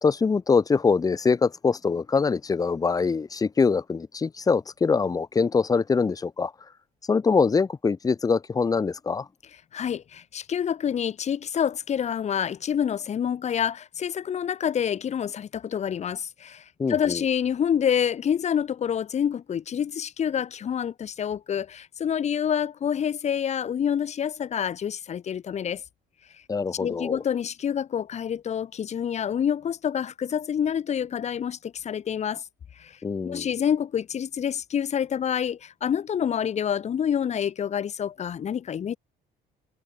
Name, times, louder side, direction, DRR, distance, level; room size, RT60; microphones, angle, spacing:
voice 1, 0.0-6.5 7.1-9.3 16.8-17.2 26.5-27.2 33.0-33.5, left 5 dB, 20° left, 0.8 m, -23 dB
voice 2, 9.7-25.8 26.8-32.4 32.8-33.0 33.2-39.0, left 8 dB, 40° left, 1.3 m, -27 dB
cardioid pair, 110°, 17 cm